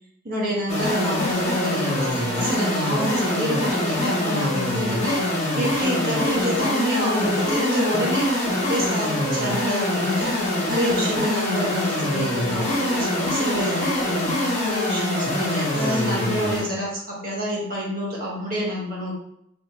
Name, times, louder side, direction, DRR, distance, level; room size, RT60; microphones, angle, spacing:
voice 1, 0.2-8.3 8.7-10.3 10.7-19.2, equal, 50° right, -5 dB, 1.6 m, -27 dB
sound 1, 0.7-16.7, left 1 dB, 35° left, 1.2 m, -24 dB
3.4 x 3.0 x 4.1 m, 0.74 s
head